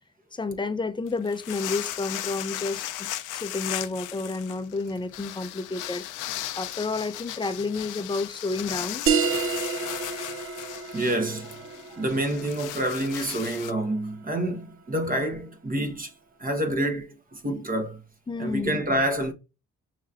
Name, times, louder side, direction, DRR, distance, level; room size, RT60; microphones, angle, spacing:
voice 1, 0.3-3.1 3.3-6.0 6.6-9.0 18.3-18.8, left 3 dB, 15° left, 0.6 m, -30 dB
sound 1, 1.1-13.7, left 14 dB, 90° left, 0.5 m, -36 dB
sound 2, 9.1-14.1, right 6 dB, 45° right, 0.4 m, -30 dB
voice 2, 10.9-16.1 16.4-18.0 18.4-19.3, right 1 dB, 30° right, 1.0 m, -28 dB
5.6 x 3.1 x 2.4 m
cardioid pair, 90°, 30 cm